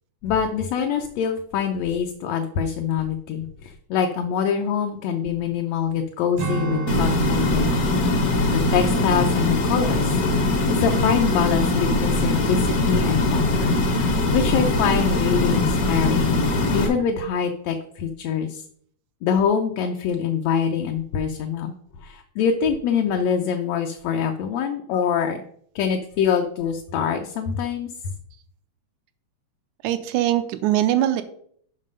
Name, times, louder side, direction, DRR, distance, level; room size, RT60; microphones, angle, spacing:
voice 1, 0.2-8.0 8.5-10.1 10.7-13.7 14.1-16.4 16.7-18.6 19.2-25.4 25.7-27.9, left 7 dB, 75° left, 3 dB, 1.7 m, -24 dB
Strum, 6.4-11.1 11.5-11.7, right 4 dB, 65° right, 1.4 m, -33 dB
sound 1, 6.9-16.9, left 2 dB, 55° left, 0.9 m, -21 dB
voice 2, 29.8-31.2, right 12 dB, 80° right, 10 dB, 2.0 m, -21 dB
7.5 x 5.7 x 5.3 m, 0.64 s
omnidirectional pair, 3.4 m